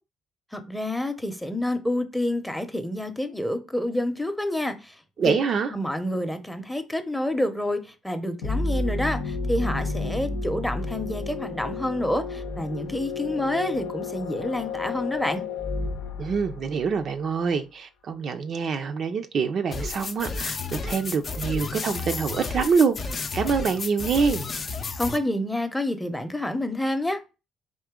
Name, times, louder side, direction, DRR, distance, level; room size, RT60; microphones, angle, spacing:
voice 1, 0.5-5.3 5.7-15.4 25.0-27.2, left 1 dB, 5° left, 0.7 m, -28 dB
voice 2, 5.2-5.7 16.2-24.4, right 5 dB, 55° right, 0.5 m, -25 dB
sound 1, 8.4-17.0, left 3 dB, 85° left, 0.7 m, -31 dB
sound 2, 19.7-25.2, left 4 dB, 45° left, 0.5 m, -32 dB
3.7 x 2.7 x 3.6 m
supercardioid pair, 65°, 0 cm